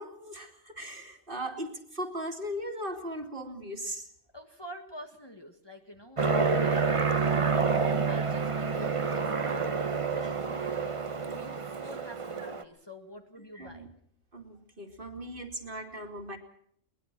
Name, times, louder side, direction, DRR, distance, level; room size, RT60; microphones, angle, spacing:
voice 1, 0.0-4.1 13.6-13.9 14.3-16.4, equal, 45° right, 4 dB, 2.7 m, -38 dB
voice 2, 4.3-13.9, equal, 20° left, 3 dB, 1.8 m, -48 dB
Aircraft, 6.2-12.6, right 4 dB, 30° right, 1.0 m, -28 dB
22.0 x 20.0 x 6.0 m, 0.66 s
omnidirectional pair, 1.3 m